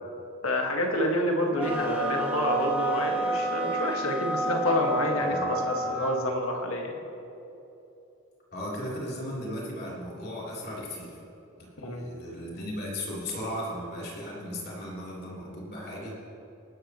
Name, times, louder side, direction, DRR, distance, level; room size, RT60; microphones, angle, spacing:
voice 1, 0.4-7.0 11.8-12.0, left 1 dB, 85° left, 1 dB, 1.8 m, -28 dB
sound 1, 1.6-6.2, right 2 dB, 10° right, 1.7 m, -29 dB
voice 2, 8.5-11.2 11.6-16.1, equal, 50° left, -5 dB, 3.6 m, -36 dB
19.5 x 13.0 x 3.1 m, 3.0 s
head